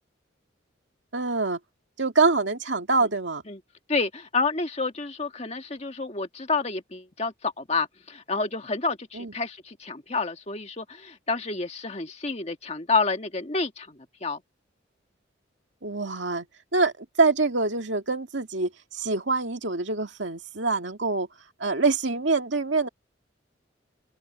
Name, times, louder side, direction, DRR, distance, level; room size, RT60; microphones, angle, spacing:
voice 1, 1.1-1.6 2.0-3.4 9.1-9.3 15.8-16.5 16.7-21.3 21.6-22.9, right 3 dB, 70° right, 2.2 m, -25 dB
voice 2, 3.9-14.4, left 3 dB, 35° left, 1.6 m, -29 dB
open air
head